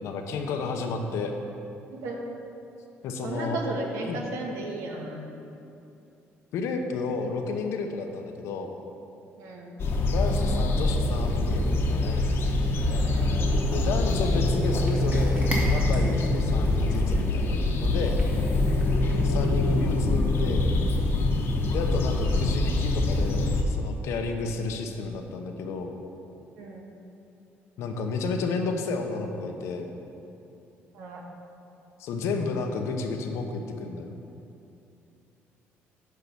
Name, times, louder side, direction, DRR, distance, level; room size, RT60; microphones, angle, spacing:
voice 1, 0.0-1.3 3.0-3.6 4.1-4.2 6.5-8.7 10.1-12.2 13.7-18.2 19.2-20.8 21.7-25.9 27.8-29.9 32.0-34.2, left 4 dB, 80° left, 4 dB, 0.9 m, -31 dB
voice 2, 3.2-5.3 9.4-9.8 13.0-13.4 18.3-19.0 26.6-26.9 30.9-31.3, right 2 dB, 85° right, 0 dB, 1.4 m, -35 dB
sound 1, 9.8-23.6, left 2 dB, 55° left, 1.1 m, -24 dB
Cat, 14.2-19.4, right 1 dB, 30° right, 2.1 m, -40 dB
8.3 x 5.7 x 6.9 m, 2.7 s
cardioid pair, 115°, 5 cm